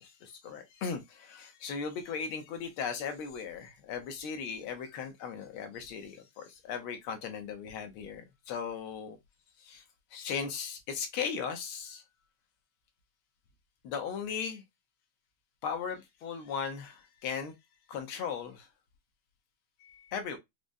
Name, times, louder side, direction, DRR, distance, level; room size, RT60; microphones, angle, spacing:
voice 1, 0.0-9.2 9.6-9.8 10.1-12.0 13.8-14.6 15.6-17.5 17.9-18.7 19.8-20.4, left 6 dB, 75° left, 1.6 m, -37 dB
4.9 x 2.1 x 2.5 m
omnidirectional pair, 2.4 m